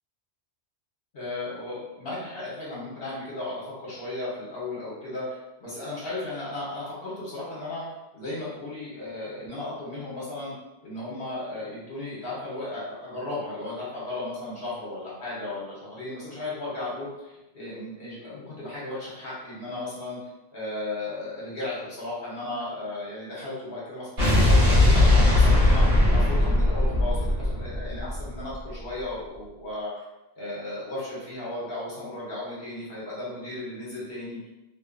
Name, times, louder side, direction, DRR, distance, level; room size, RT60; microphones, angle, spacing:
voice 1, 1.1-7.8 8.1-10.5 10.8-20.2 20.5-30.0 30.4-34.4, left 2 dB, 65° left, -7 dB, 1.0 m, -35 dB
Explosion, 24.2-28.5, left 1 dB, 75° right, 1.1 m, -19 dB
2.6 x 2.2 x 2.4 m, 0.98 s
omnidirectional pair, 1.1 m